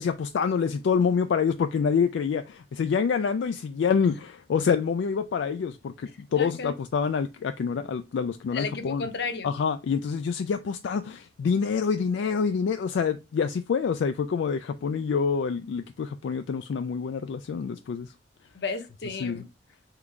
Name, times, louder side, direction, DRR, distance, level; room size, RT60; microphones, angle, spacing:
voice 1, 0.0-9.1 9.4-18.1 19.2-19.4, left 6 dB, 85° left, 0.3 m, -27 dB
voice 2, 6.4-6.7 8.5-9.5 18.5-19.5, left 4 dB, 65° left, 0.8 m, -33 dB
3.8 x 3.5 x 3.1 m
head